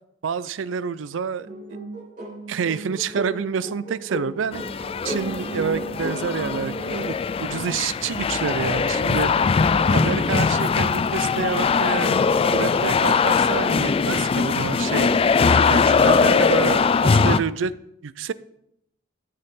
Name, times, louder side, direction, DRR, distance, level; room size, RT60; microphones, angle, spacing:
voice 1, 0.2-1.5 2.5-4.6 5.0-9.3 9.9-12.2 12.5-15.1 15.7-17.7 18.0-18.3, right 6 dB, 85° right, 17 dB, 0.4 m, -28 dB
sound 1, 1.4-6.9, right 1 dB, 45° right, 3.1 m, -34 dB
sound 2, 4.5-17.4, left 5 dB, 30° left, 0.3 m, -21 dB
13.5 x 6.7 x 3.7 m, 0.78 s
head